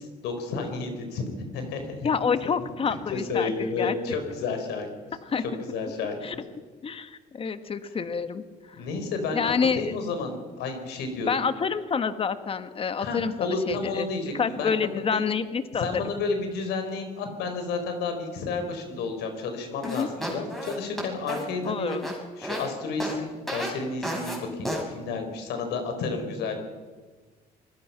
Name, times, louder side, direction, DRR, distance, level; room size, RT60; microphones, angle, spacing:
voice 1, 0.2-1.2 1.5-2.7 3.1-4.9 5.6-6.4 8.8-11.3 13.0-14.7 15.1-15.3 15.8-21.9 22.4-26.6, left 4 dB, 80° left, 6 dB, 4.4 m, -31 dB
voice 2, 2.0-4.0 5.2-5.4 6.2-6.4 6.8-8.8 9.3-9.9 11.3-14.1 14.3-15.9 19.8-20.1 21.6-22.1, left 6 dB, 35° left, 10 dB, 1.4 m, -28 dB
sound 1, 19.8-22.7 23.0-23.2 23.5-23.7 24.0-24.4 24.6-24.8, equal, ahead, 6.1 m, -32 dB
25.0 x 20.0 x 5.8 m, 1.4 s
cardioid pair, 110°, 17 cm